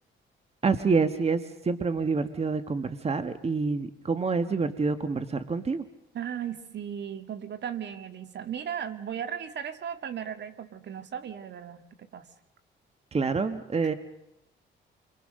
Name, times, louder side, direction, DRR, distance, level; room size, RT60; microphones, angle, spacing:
voice 1, 0.6-5.8 13.1-13.9, right 4 dB, 30° right, 10 dB, 1.5 m, -27 dB
voice 2, 6.1-11.8 12.1-12.3, right 9 dB, 60° right, 9 dB, 2.3 m, -36 dB
29.5 x 24.0 x 6.6 m, 0.84 s
cardioid pair, 90°, 20 cm